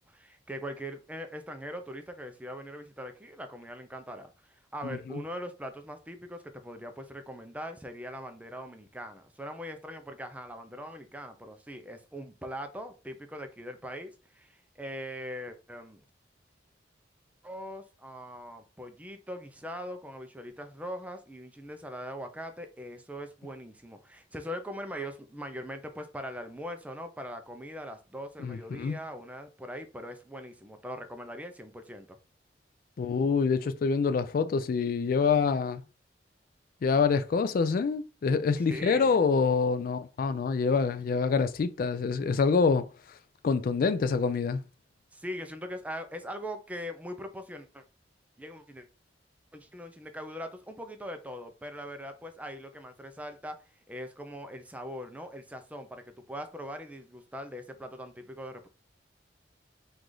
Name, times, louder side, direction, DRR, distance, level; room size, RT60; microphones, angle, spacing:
voice 1, 0.1-16.0 17.4-32.2 38.7-39.2 45.1-47.8 48.4-48.9 49.5-53.6 53.9-58.7, equal, 10° right, 0.5 m, -41 dB
voice 2, 4.8-5.2 28.4-29.0 33.0-35.8 36.8-42.9 43.4-44.6, left 5 dB, 50° left, 0.3 m, -26 dB
4.8 x 2.5 x 3.8 m
head